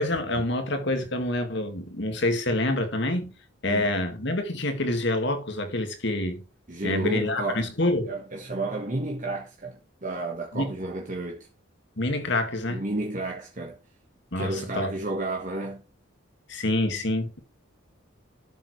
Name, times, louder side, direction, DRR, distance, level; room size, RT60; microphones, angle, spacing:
voice 1, 0.0-3.3 3.6-6.4 6.8-8.1 10.5-10.7 12.0-12.8 14.3-14.9 16.5-17.4, left 1 dB, 60° left, 2.1 m, -27 dB
voice 2, 3.6-4.0 6.7-7.7 8.1-11.5 12.7-13.8 14.3-15.8, right 2 dB, 40° right, 1.5 m, -32 dB
12.5 x 7.4 x 3.3 m
head